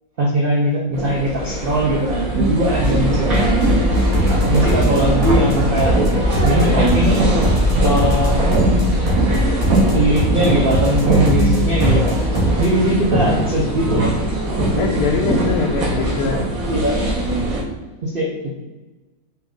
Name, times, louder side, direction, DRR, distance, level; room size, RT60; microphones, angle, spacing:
voice 1, 0.2-3.7 4.3-6.0 6.4-7.3 7.8-8.4 9.9-12.2 12.6-14.2 15.9-16.0 16.7-17.0 18.0-18.5, right 1 dB, 75° right, -2 dB, 0.5 m, -20 dB
sound 1, 0.9-17.6, right 1 dB, 55° right, 1.4 m, -20 dB
sound 2, 2.8-12.7, equal, 35° right, 1.8 m, -22 dB
voice 2, 14.8-16.4, left 5 dB, 70° left, 1 dB, 1.0 m, -23 dB
5.5 x 2.4 x 3.9 m, 1.1 s
omnidirectional pair, 1.8 m